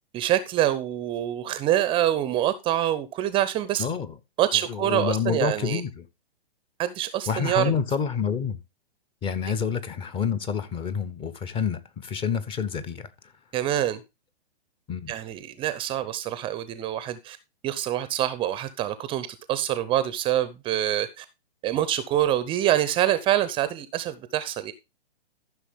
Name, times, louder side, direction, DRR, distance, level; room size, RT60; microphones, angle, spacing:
voice 1, 0.1-3.9 4.4-5.8 6.8-7.7 13.5-14.0 15.1-17.4 17.6-21.3 21.6-24.7, right 12 dB, 15° right, 0.6 m, -25 dB
voice 2, 3.8-4.2 4.7-6.1 7.3-8.6 9.2-13.3 14.9-15.1, left 6 dB, 15° left, 0.7 m, -28 dB
14.0 x 6.2 x 3.5 m
hypercardioid pair, 130°, 32 cm